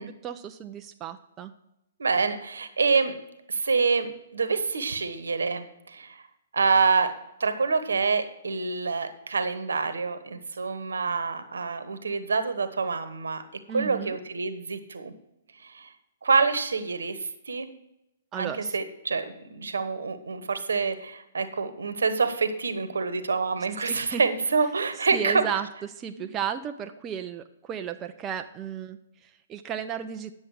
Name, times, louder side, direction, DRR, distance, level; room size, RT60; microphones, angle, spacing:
voice 1, 0.2-1.5 13.7-14.2 18.3-18.8 23.8-24.2 25.1-30.3, right 8 dB, 25° right, 7 dB, 0.5 m, -34 dB
voice 2, 2.0-3.1 3.5-6.2 6.5-7.1 7.4-13.4 13.7-15.1 15.6-15.9 16.2-17.7 18.4-25.4 26.2-26.3, right 4 dB, 80° right, 11 dB, 1.1 m, -26 dB
9.9 x 7.2 x 4.8 m, 0.85 s
hypercardioid pair, 125°, 0 cm